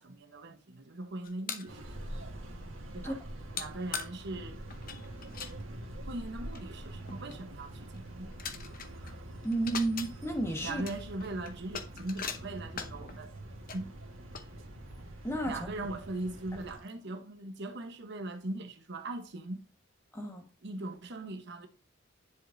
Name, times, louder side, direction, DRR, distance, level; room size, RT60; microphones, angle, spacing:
voice 1, 0.0-1.9 2.9-3.2 3.5-4.6 6.1-8.4 10.6-13.3 13.7-13.9 15.5-19.6 20.6-21.7, right 2 dB, 60° right, 1.0 m, -40 dB
sound 1, 1.2-1.7 3.6-3.7 3.9-4.1 4.7-5.5 6.2-6.3 6.5-6.7 7.1-7.4 7.9-8.0 8.3-9.1 9.4-10.1 10.6-13.1 13.7-13.8 14.3-15.0 15.5-15.6 16.2-16.3 16.6-16.9, left 6 dB, 45° left, 0.8 m, -40 dB
sound 2, 1.7-16.8, right 1 dB, 80° right, 1.6 m, -45 dB
voice 2, 9.4-10.8 15.2-15.7 20.1-20.5, right 2 dB, 15° left, 1.4 m, -32 dB
10.5 x 5.0 x 2.6 m
head